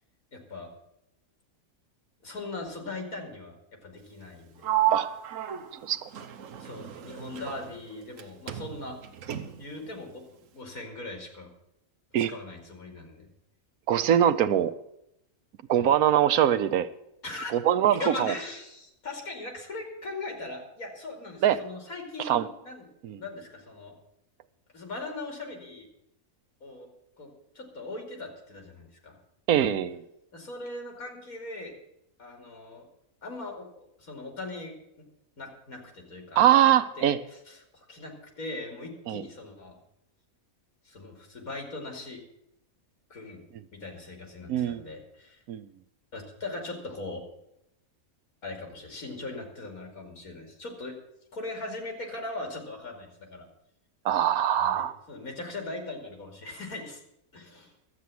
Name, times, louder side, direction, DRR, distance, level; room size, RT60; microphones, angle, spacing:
voice 1, 0.3-0.7 2.2-3.5 3.8-4.7 6.6-9.0 9.6-11.5 12.1-13.3 15.7-15.9 17.2-17.5 17.9-22.9 23.2-24.0 24.7-25.9 26.6-26.9 27.2-29.2 30.3-31.7 32.2-32.9 33.2-34.7 35.4-39.8 40.8-42.2 43.1-43.4 43.7-45.4 46.1-47.2 48.4-51.0 51.3-53.5 54.5-57.0 57.3-57.7, left 2 dB, 80° left, 3 dB, 2.9 m, -40 dB
Sliding door, 4.6-8.2 8.5-9.8, right 12 dB, 65° right, 1.2 m, -32 dB
voice 2, 13.9-14.7 15.7-16.9 17.5-18.3 21.4-21.6 22.3-22.5 23.0-23.2 29.5-30.0 36.4-37.2 39.1-39.2 44.5-44.8 45.5-45.7 54.0-54.9, right 10 dB, 90° right, 12 dB, 1.2 m, -22 dB
12.0 x 8.3 x 7.6 m, 0.82 s
omnidirectional pair, 1.5 m